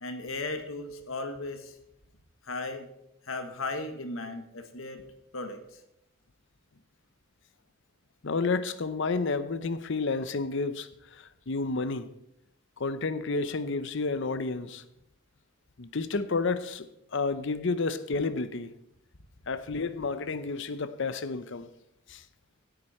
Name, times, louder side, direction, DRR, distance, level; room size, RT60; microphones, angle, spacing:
voice 1, 0.0-1.8 2.4-2.9 3.2-5.0 5.3-5.8, left 2 dB, 90° left, 1.6 m, -36 dB
voice 2, 8.2-12.1 12.8-14.8 15.8-16.9 17.1-18.7 19.5-21.7 22.1-22.2, left 4 dB, 65° left, 0.7 m, -30 dB
16.5 x 8.9 x 4.4 m
head